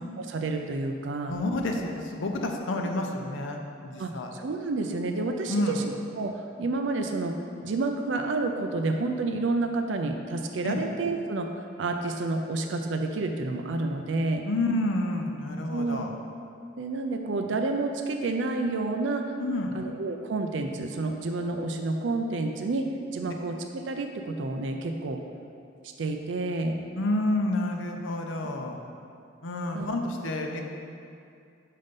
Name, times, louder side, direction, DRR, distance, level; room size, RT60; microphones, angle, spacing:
voice 1, 0.2-1.3 4.0-11.5 11.8-14.4 15.7-16.1 16.8-19.2 19.7-22.9 23.1-25.2 26.0-26.8 29.7-29.9, right 3 dB, 75° right, 4 dB, 0.4 m, -29 dB
voice 2, 1.3-4.3 5.5-5.9 10.6-10.9 14.4-16.1 19.4-19.8 27.0-28.8 29.4-30.6, left 1 dB, 80° left, 2 dB, 0.7 m, -29 dB
5.6 x 5.2 x 5.3 m, 2.4 s
head